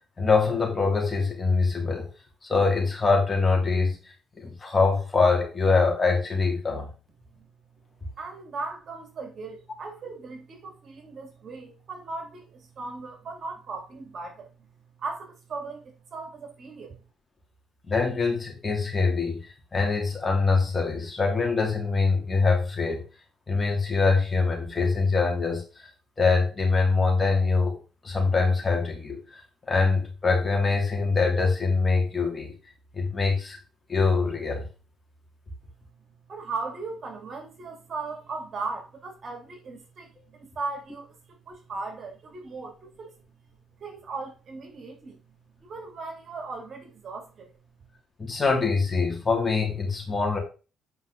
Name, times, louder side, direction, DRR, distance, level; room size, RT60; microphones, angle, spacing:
voice 1, 0.2-2.1 2.4-4.0 4.4-6.9 17.9-19.4 19.7-23.0 23.5-25.9 26.2-27.8 28.0-29.4 29.7-32.5 32.9-33.6 33.9-34.6 48.2-50.4, left 4 dB, 25° left, 3.3 m, -24 dB
voice 2, 8.2-14.7 15.0-17.0 36.3-43.2 43.8-45.2 45.6-47.6, right 3 dB, 50° right, 2.7 m, -38 dB
8.6 x 5.5 x 3.9 m
cardioid pair, 90°, 0 cm